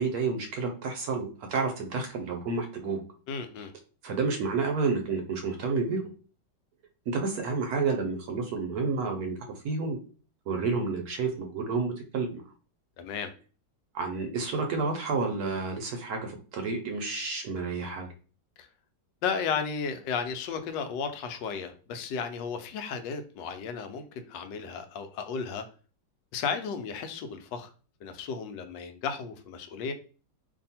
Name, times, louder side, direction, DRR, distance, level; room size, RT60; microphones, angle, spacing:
voice 1, 0.0-3.0 4.0-6.0 7.1-9.4 9.6-10.0 10.5-12.4 13.9-18.1, right 4 dB, 70° right, 4 dB, 1.0 m, -30 dB
voice 2, 3.3-3.7 13.0-13.3 18.6-18.7 19.2-25.6 26.3-27.7 28.0-29.9, left 6 dB, 80° left, 8 dB, 1.2 m, -34 dB
2.8 x 2.6 x 4.1 m, 0.38 s
omnidirectional pair, 1.9 m